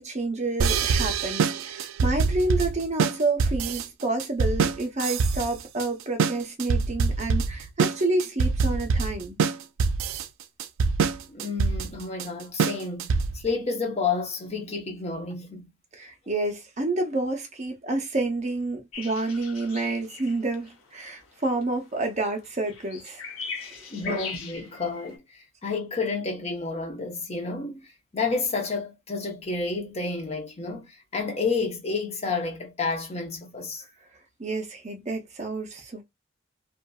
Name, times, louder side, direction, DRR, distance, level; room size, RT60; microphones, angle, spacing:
voice 1, 0.0-9.4 15.9-23.2 23.6-23.7 24.1-24.3 34.4-36.0, right 2 dB, 35° right, 0.6 m, -29 dB
sound 1, 0.6-13.5, right 5 dB, 80° right, 0.3 m, -25 dB
voice 2, 11.3-15.7 23.9-25.2 25.6-27.9 28.1-33.8, left 4 dB, 30° left, 0.8 m, -30 dB
sound 2, 18.9-25.2, left 5 dB, 80° left, 0.9 m, -40 dB
2.7 x 2.5 x 2.3 m
head